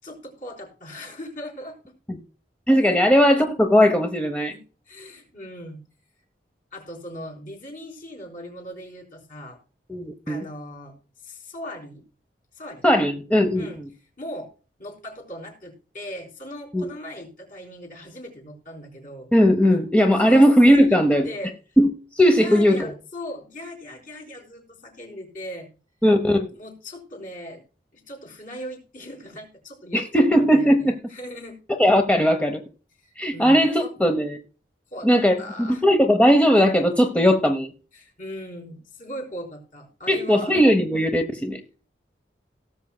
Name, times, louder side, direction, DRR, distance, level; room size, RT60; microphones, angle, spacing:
voice 1, 0.0-1.8 2.8-3.0 4.5-5.8 6.7-9.6 10.3-10.9 11.2-12.0 12.5-13.0 13.6-13.8 14.2-14.5 14.8-19.3 19.7-19.8 20.1-20.5 20.7-21.0 21.2-21.5 22.4-25.7 26.5-27.6 27.9-31.6 33.0-33.9 34.9-35.9 37.9-40.5, left 1 dB, 45° left, 0 dB, 4.3 m, -38 dB
voice 2, 2.7-4.5 9.9-10.4 12.8-13.7 16.7-16.8 19.3-21.2 21.8-21.9 22.2-22.9 26.0-26.5 29.9-30.9 31.8-32.6 33.2-34.4 35.0-37.7 40.1-41.6, equal, 5° left, 5 dB, 0.9 m, -18 dB
18.0 x 7.2 x 2.2 m, 0.36 s
head